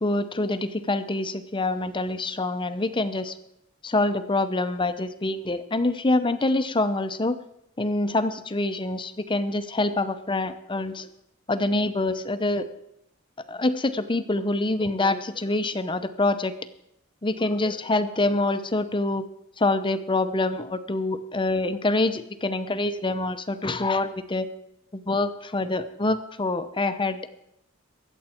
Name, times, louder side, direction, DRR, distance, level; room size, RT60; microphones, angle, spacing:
voice 1, 0.0-3.3 3.8-7.4 7.8-11.1 11.5-12.7 13.5-16.5 17.2-19.2 19.6-24.5 24.9-27.3, left 2 dB, 25° left, 10 dB, 0.8 m, -26 dB
22.5 x 8.2 x 4.4 m, 0.78 s
head